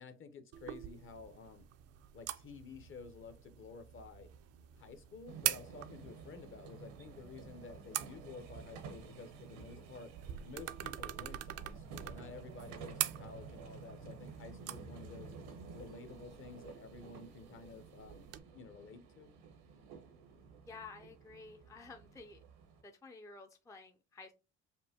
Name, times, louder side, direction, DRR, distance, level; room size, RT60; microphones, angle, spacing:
voice 1, 0.0-1.7 2.1-4.3 4.8-10.1 10.4-15.3 15.7-19.3, left 4 dB, 40° left, 0.8 m, -52 dB
sound 1, 0.5-18.4, right 12 dB, 55° right, 0.5 m, -45 dB
sound 2, 5.3-22.8, right 5 dB, 85° right, 1.0 m, -52 dB
voice 2, 20.7-22.4 22.8-24.3, left 4 dB, 10° left, 0.5 m, -52 dB
5.3 x 2.2 x 2.8 m
supercardioid pair, 85°, 32 cm